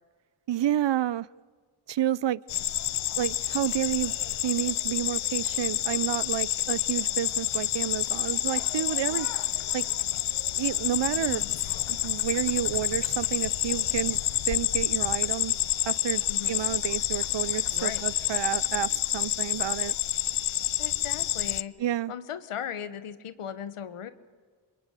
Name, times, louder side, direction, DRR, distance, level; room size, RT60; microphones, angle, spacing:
voice 1, 0.5-1.3 1.9-2.4 3.2-4.1 4.4-9.3 9.7-9.9 10.6-11.4 11.9-14.2 14.5-15.5 15.9-20.0 21.8-22.1, right 11 dB, 60° right, 22 dB, 0.7 m, -30 dB
sound 1, 2.5-21.6, left 12 dB, 70° left, 0.7 m, -28 dB
voice 2, 11.2-11.5 16.3-16.5 17.7-18.0 20.8-21.7 22.1-24.1, left 9 dB, 90° left, 13 dB, 1.4 m, -37 dB
26.0 x 21.5 x 9.1 m, 1.5 s
cardioid pair, 50°, 49 cm